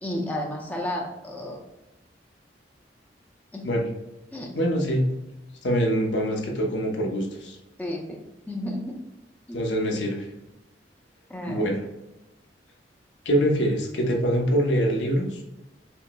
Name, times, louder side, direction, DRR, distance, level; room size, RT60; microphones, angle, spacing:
voice 1, 0.0-1.6 3.5-3.7 4.3-4.5 7.8-8.2 8.5-8.8 9.5-9.6 11.3-11.7, left 1 dB, 10° left, -1 dB, 0.5 m, -32 dB
voice 2, 4.5-5.0 5.6-7.6 9.5-10.3 11.5-11.8 13.2-15.4, equal, 80° left, 0 dB, 0.7 m, -24 dB
5.3 x 2.0 x 2.2 m, 0.96 s
head